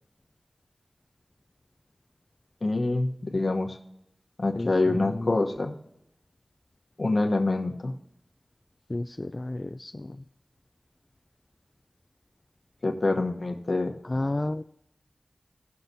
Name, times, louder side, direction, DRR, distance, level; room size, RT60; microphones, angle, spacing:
voice 1, 2.6-3.8 4.4-5.8 7.0-7.9 12.8-13.9, left 2 dB, 60° left, 3 dB, 1.0 m, -26 dB
voice 2, 4.6-5.3 8.9-10.2 14.1-14.6, left 2 dB, 35° left, 7 dB, 0.3 m, -32 dB
17.5 x 5.8 x 2.7 m, 0.80 s
wide cardioid pair, 50°, 0 cm